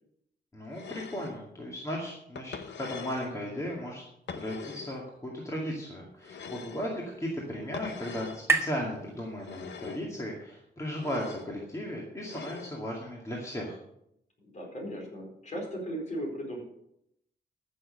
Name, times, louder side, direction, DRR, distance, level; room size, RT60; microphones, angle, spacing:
voice 1, 0.5-4.0 4.4-13.8, equal, 15° left, -3 dB, 2.2 m, -36 dB
sound 1, 0.7-1.4 2.4-3.3 4.3-5.0 6.2-6.9 7.7-8.4 9.4-10.1 10.9-11.5 12.2-12.8, left 6 dB, 80° left, 1.1 m, -42 dB
sound 2, 6.1-9.9, right 4 dB, 15° right, 1.5 m, -35 dB
voice 2, 14.4-16.6, equal, 40° left, 1 dB, 4.5 m, -37 dB
14.5 x 6.6 x 6.6 m, 0.78 s
wide cardioid pair, 145°, 18 cm